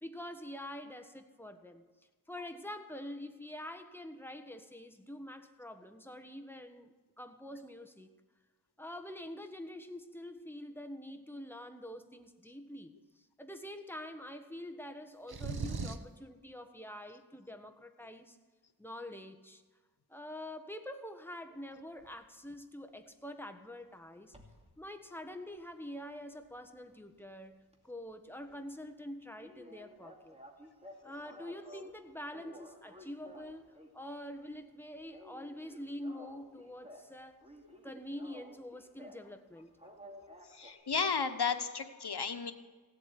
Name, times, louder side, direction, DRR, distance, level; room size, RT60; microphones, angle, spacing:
voice 1, 0.0-1.8 2.3-8.1 8.8-18.4 18.8-19.6 20.1-24.3 24.8-30.3 31.0-37.5 37.8-39.7, left 1 dB, 5° left, 7 dB, 1.3 m, -46 dB
sound 1, 15.3-16.2, right 4 dB, 75° right, 1.0 m, -37 dB
sound 2, 22.0-22.2 24.3-24.7 25.2-27.3 27.6-27.8 28.1-28.2 28.5-28.6 28.8-28.9 29.4-32.0 32.3-34.1 34.4-34.7 35.0-37.1 37.4-39.3 39.8-40.7, equal, 15° right, 2.6 m, -54 dB
voice 2, 40.4-42.5, left 5 dB, 90° left, 8 dB, 1.1 m, -33 dB
16.5 x 7.9 x 9.6 m, 1.3 s
wide cardioid pair, 50°, 38 cm